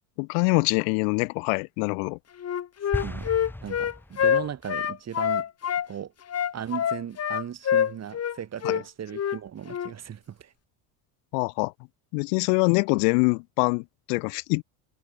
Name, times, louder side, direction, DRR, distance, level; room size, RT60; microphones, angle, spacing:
voice 1, 0.2-2.2 8.6-8.8 11.3-11.7 12.1-14.6, left 40 dB or more, 85° left, 1.6 m, -24 dB
Wind instrument woodwind instrument, 2.4-5.9 6.3-8.4 8.6-8.8 9.1-9.4 9.7-9.9, left 9 dB, 35° left, 2.4 m, -26 dB
sound 1, 2.9-4.6, left 1 dB, 5° left, 2.4 m, -35 dB
voice 2, 3.0-3.3 3.6-5.4 5.9-6.1 6.5-10.5, right 9 dB, 35° right, 3.3 m, -37 dB
cardioid pair, 125°, 45 cm